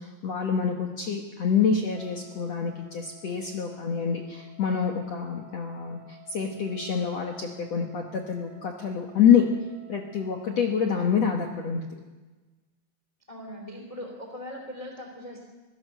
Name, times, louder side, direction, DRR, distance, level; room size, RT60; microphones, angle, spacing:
voice 1, 0.0-9.4 9.9-11.8, left 7 dB, 70° left, 2 dB, 1.6 m, -26 dB
Wind instrument woodwind instrument, 1.9-11.3, right 9 dB, 15° right, 5.4 m, -53 dB
voice 2, 13.3-15.4, left 1 dB, 10° left, 2 dB, 1.7 m, -40 dB
24.0 x 16.5 x 6.8 m, 1.2 s
omnidirectional pair, 5.1 m